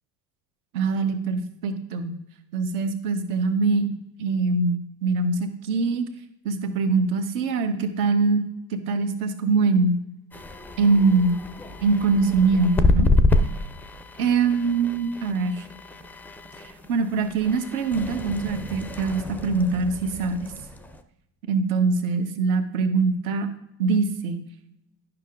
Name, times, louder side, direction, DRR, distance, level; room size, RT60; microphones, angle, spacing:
voice 1, 0.7-2.1 2.5-3.9 4.2-6.0 6.4-8.4 8.7-10.0 10.8-11.4 11.8-13.1 14.2-15.7 16.6-20.5 21.5-23.5 23.8-24.4, right 4 dB, 60° right, 7 dB, 1.2 m, -23 dB
sound 1, 10.3-21.0, left 2 dB, 5° left, 0.4 m, -28 dB
11.5 x 5.8 x 2.5 m, 0.84 s
figure-of-eight pair, 65°, 50 cm